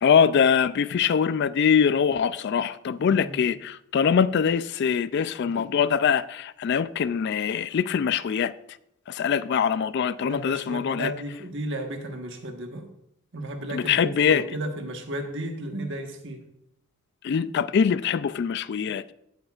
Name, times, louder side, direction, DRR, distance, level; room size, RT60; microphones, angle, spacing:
voice 1, 0.0-8.5 9.1-11.1 13.7-14.4 17.2-19.1, left 7 dB, 50° left, 0.3 m, -23 dB
voice 2, 3.0-3.4 10.2-12.9 13.3-16.4, right 1 dB, 55° right, 1.3 m, -34 dB
15.5 x 8.2 x 2.4 m
head